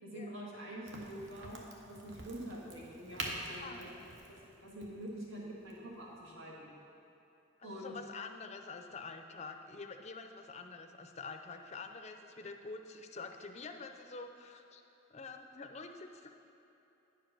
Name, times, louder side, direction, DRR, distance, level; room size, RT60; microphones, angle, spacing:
voice 1, 0.0-1.6 1.9-4.0 4.3-6.7 7.6-7.9, right 1 dB, 75° right, -4 dB, 1.8 m, -46 dB
Crack, 0.9-6.3, right 2 dB, 60° right, 1.0 m, -46 dB
voice 2, 7.6-14.8 15.1-16.4, left 4 dB, 30° left, 6 dB, 0.4 m, -47 dB
9.4 x 5.0 x 5.8 m, 3.0 s
head